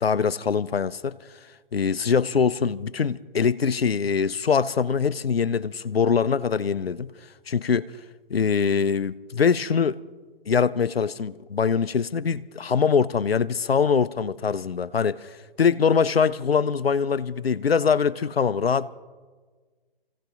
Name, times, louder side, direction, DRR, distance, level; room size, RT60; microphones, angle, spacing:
voice 1, 0.0-1.2 1.7-7.1 7.5-7.9 8.3-10.0 10.5-18.9, left 6 dB, 85° left, 0.5 m, -23 dB
26.5 x 16.0 x 2.5 m
figure-of-eight pair, 125°, 29 cm